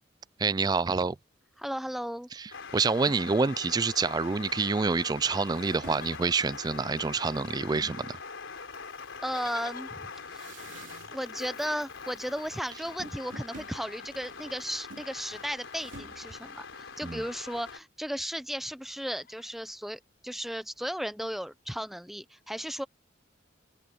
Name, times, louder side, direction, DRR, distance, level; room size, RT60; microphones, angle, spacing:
voice 1, 0.4-1.2 2.7-8.2 17.0-17.2, right 4 dB, 20° right, 0.3 m, -27 dB
voice 2, 1.6-2.3 9.2-10.7 11.1-22.8, equal, ahead, 0.7 m, -35 dB
sound 1, 2.5-17.8, left 5 dB, 85° left, 4.1 m, -43 dB
sound 2, 5.0-5.1 5.4-8.1 8.7-11.4 11.7-12.2 12.5-17.1, right 2 dB, 90° right, 2.8 m, -51 dB
Livestock farm animals working animals, 5.6-7.6 7.8-7.9 8.2-15.1 15.5-16.5 17.7-17.8 18.0-18.2 18.6-19.5 20.2-20.3, left 7 dB, 50° left, 6.6 m, -54 dB
head